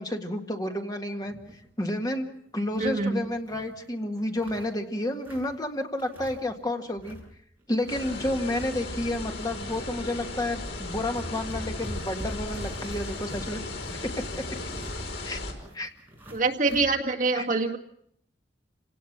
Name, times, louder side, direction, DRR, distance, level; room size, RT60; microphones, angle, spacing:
voice 1, 0.0-1.3 1.8-7.2 7.7-13.6 15.2-15.4 15.7-15.9 17.3-17.5, left 1 dB, 20° left, 4 dB, 1.8 m, -30 dB
sound 1, 1.2-1.7 2.1-2.2 2.5-3.7 4.2-5.6 6.0-6.6 6.8-7.3 7.6-9.2 9.6-9.8 10.5-10.6 10.8-16.9, equal, 10° right, 6.5 m, -43 dB
voice 2, 2.8-3.2 16.3-17.8, right 3 dB, 50° right, 1 dB, 2.0 m, -25 dB
sound 2, 7.9-15.5, left 2 dB, 80° left, 4.9 m, -36 dB
28.0 x 18.0 x 5.9 m, 0.68 s
head